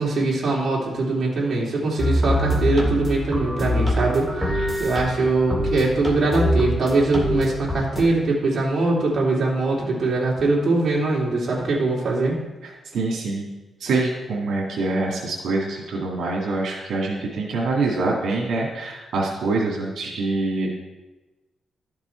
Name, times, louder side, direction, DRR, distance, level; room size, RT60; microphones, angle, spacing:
voice 1, 0.0-12.4, right 2 dB, 45° right, -4 dB, 2.7 m, -22 dB
sound 1, 2.0-8.0, equal, 5° right, 2.0 m, -24 dB
voice 2, 12.6-13.5 13.8-20.7, right 3 dB, 80° right, -3 dB, 2.0 m, -25 dB
12.5 x 6.0 x 4.5 m, 1.1 s
cardioid pair, 120°, 0 cm